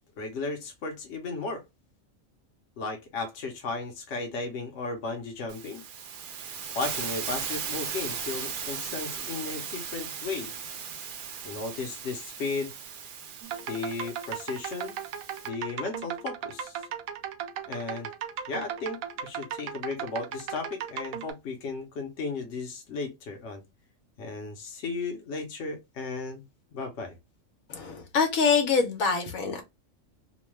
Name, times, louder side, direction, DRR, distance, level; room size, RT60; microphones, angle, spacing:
voice 1, 0.2-1.6 2.8-5.8 6.8-10.5 11.4-12.7 13.7-15.0 15.4-16.8 17.7-18.1 18.5-23.6 24.2-26.4 26.7-27.1, left 3 dB, 60° left, 1.0 m, -35 dB
Hiss, 5.5-15.5, right 7 dB, 65° right, 0.5 m, -37 dB
sound 1, 13.4-21.3, right 8 dB, 85° right, 1.0 m, -36 dB
voice 2, 27.7-29.6, left 5 dB, 80° left, 1.2 m, -25 dB
3.0 x 2.2 x 3.1 m
omnidirectional pair, 1.4 m